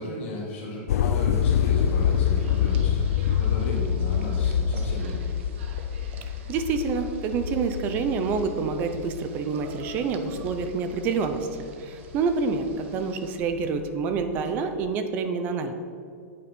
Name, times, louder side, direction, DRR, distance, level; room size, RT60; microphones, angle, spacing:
voice 1, 0.0-5.2, left 1 dB, 50° left, -4 dB, 2.3 m, -34 dB
sound 1, 0.9-11.7 12.1-13.8 14.1-14.9, left 9 dB, 80° left, 0.4 m, -26 dB
sound 2, 1.3-13.4, right 4 dB, 50° right, 0.9 m, -48 dB
voice 2, 6.5-15.7, right 5 dB, 20° right, 8 dB, 0.5 m, -27 dB
8.6 x 7.4 x 5.2 m, 2.3 s
supercardioid pair, 180°, 8 cm